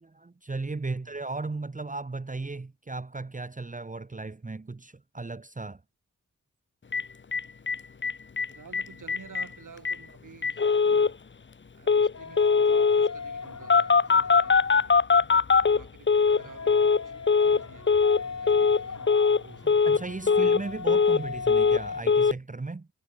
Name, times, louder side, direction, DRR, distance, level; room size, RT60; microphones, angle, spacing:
voice 1, 0.0-5.8 10.8-11.0 19.6-22.9, right 3 dB, 25° right, 1.3 m, -36 dB
voice 2, 0.7-1.1 1.4-1.5 8.5-11.2 11.7-15.0 15.6-17.1 17.4-20.0, right 6 dB, 70° right, 5.3 m, -51 dB
Telephone, 6.9-7.0 7.3-7.4 7.7-7.8 8.0-8.5 8.7-8.8 9.1-9.5 9.9-10.0 10.4-11.1 11.9-12.1 12.4-13.1 13.7-16.4 16.7-17.0 17.3-17.6 17.9-18.2 18.5-18.8 19.1-19.4 19.7-20.0 20.3-21.2 21.5-21.8 22.1-22.3, left 5 dB, 35° left, 1.0 m, -21 dB
sound 1, 12.1-15.2 16.2-22.0, left 5 dB, 55° left, 3.9 m, -39 dB
wide cardioid pair, 110°, 32 cm